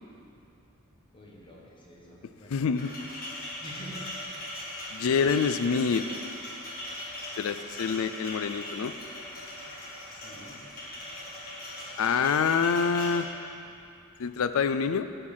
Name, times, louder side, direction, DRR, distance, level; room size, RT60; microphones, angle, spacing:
voice 1, 1.1-2.6 3.6-4.4 10.1-10.6, equal, 25° left, -4 dB, 1.4 m, -47 dB
voice 2, 2.5-2.9 4.9-6.1 7.4-8.9 12.0-13.3 14.2-15.1, left 6 dB, 75° left, 11 dB, 0.4 m, -26 dB
sound 1, 2.8-13.2, left 1 dB, 45° left, 1.7 m, -39 dB
9.5 x 4.4 x 7.3 m, 2.7 s
head